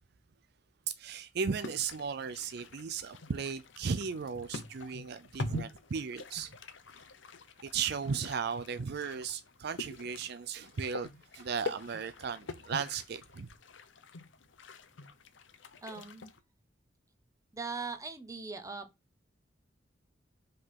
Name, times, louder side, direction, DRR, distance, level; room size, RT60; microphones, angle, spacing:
voice 1, 0.9-6.5 7.6-13.5, right 6 dB, 60° right, 0.5 m, -36 dB
sound 1, 1.5-16.4, left 3 dB, 80° left, 0.8 m, -45 dB
voice 2, 15.8-16.2 17.5-18.9, right 4 dB, 20° right, 1.0 m, -40 dB
5.4 x 3.8 x 5.7 m
head